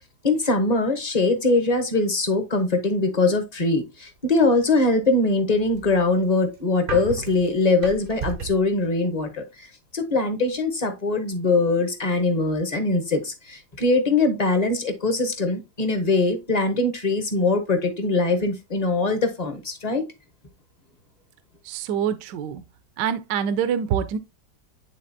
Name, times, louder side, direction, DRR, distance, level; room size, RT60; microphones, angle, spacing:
voice 1, 0.2-9.4 9.9-20.0, left 3 dB, 30° left, 0.8 m, -22 dB
sound 1, 5.7-8.7, right 5 dB, 50° right, 0.6 m, -34 dB
voice 2, 21.7-22.6 23.0-24.2, right 8 dB, 75° right, 1.2 m, -25 dB
9.9 x 3.8 x 2.6 m
omnidirectional pair, 2.0 m